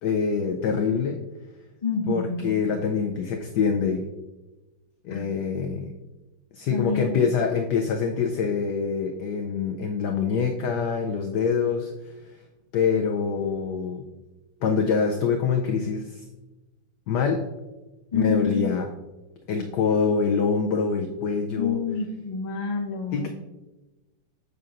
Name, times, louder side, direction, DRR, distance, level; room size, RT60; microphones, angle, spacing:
voice 1, 0.0-1.2 2.1-4.0 5.0-5.9 6.5-11.9 12.7-14.0 14.6-16.2 17.1-17.4 18.1-18.9 19.5-21.8 23.1-23.3, left 6 dB, 85° left, 3 dB, 0.9 m, -25 dB
voice 2, 1.8-2.5 5.1-5.2 6.6-7.2 18.1-18.6 21.5-23.3, left 5 dB, 60° left, 0 dB, 0.4 m, -28 dB
6.9 x 6.5 x 2.5 m, 1.1 s
omnidirectional pair, 2.3 m